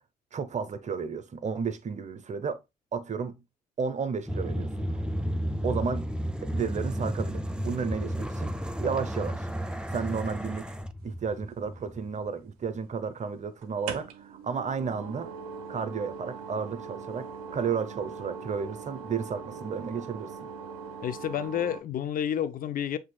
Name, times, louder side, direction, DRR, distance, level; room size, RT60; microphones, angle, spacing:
voice 1, 0.3-2.6 2.9-3.4 3.8-5.3 5.6-9.5 9.9-10.7 11.0-15.3 15.7-20.5, right 5 dB, 40° right, 0.8 m, -33 dB
sound 1, 4.3-12.4, equal, 5° right, 0.5 m, -32 dB
sound 2, 11.4-12.2 13.6-21.8, right 6 dB, 90° right, 0.5 m, -41 dB
voice 2, 21.0-23.0, left 9 dB, 50° left, 0.5 m, -30 dB
7.3 x 2.8 x 2.2 m
hypercardioid pair, 45°, 18 cm